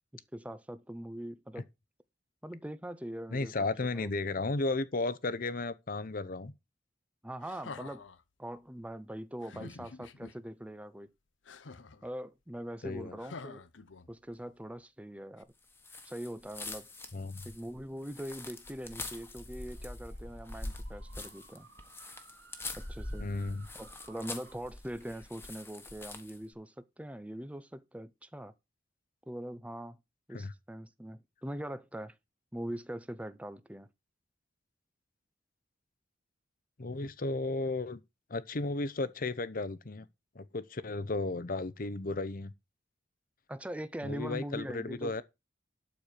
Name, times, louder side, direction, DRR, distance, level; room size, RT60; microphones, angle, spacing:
voice 1, 0.1-1.7 2.4-3.7 3.9-4.1 7.2-8.0 8.4-11.1 12.0-13.6 14.1-15.5 16.0-16.9 17.4-21.7 22.7-23.3 23.7-28.5 29.3-30.0 30.3-32.1 32.5-33.9 43.5-45.1, right 1 dB, 5° right, 0.7 m, -42 dB
voice 2, 3.3-6.5 9.5-9.7 12.8-13.2 17.1-17.5 23.2-23.7 30.3-30.5 36.8-38.0 38.3-40.1 40.3-42.5 44.0-45.2, left 3 dB, 50° left, 0.8 m, -34 dB
sound 1, 7.4-8.2 9.4-10.3 11.4-12.1 13.2-14.3 15.4-15.5, left 4 dB, 85° left, 0.8 m, -48 dB
sound 2, 15.8-26.4, left 2 dB, 15° left, 1.4 m, -44 dB
sound 3, 19.3-24.6, right 5 dB, 75° right, 1.6 m, -59 dB
12.0 x 4.6 x 6.8 m
head